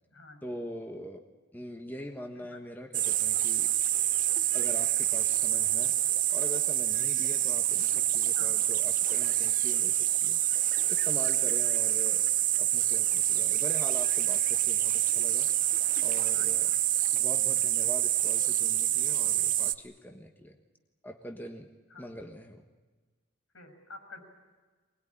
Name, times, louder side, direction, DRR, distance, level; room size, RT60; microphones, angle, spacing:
voice 1, 0.4-1.2 1.5-3.7 4.5-5.9 6.3-12.3 12.6-16.7 17.1-20.6 21.0-21.7 22.0-22.7, equal, 10° left, 4 dB, 1.3 m, -43 dB
sound 1, 2.9-19.7, right 13 dB, 40° right, 0.7 m, -27 dB
voice 2, 23.5-24.2, left 2 dB, 75° left, 6 dB, 6.7 m, -48 dB
24.0 x 20.0 x 10.0 m, 1.4 s
head